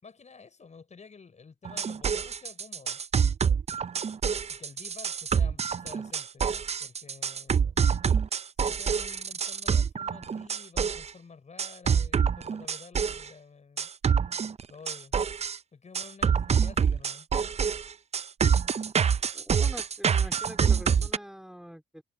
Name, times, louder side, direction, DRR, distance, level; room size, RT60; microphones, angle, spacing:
voice 1, 0.0-3.0 4.5-6.5 6.8-7.9 8.6-13.9 14.7-15.2 15.7-17.3, left 5 dB, 35° left, 6.7 m, -50 dB
sound 1, 1.7-11.1 11.6-13.3 13.8-15.6 16.0-21.2, right 7 dB, 35° right, 0.6 m, -26 dB
voice 2, 19.3-22.0, equal, ahead, 3.5 m, -44 dB
cardioid pair, 90°, 20 cm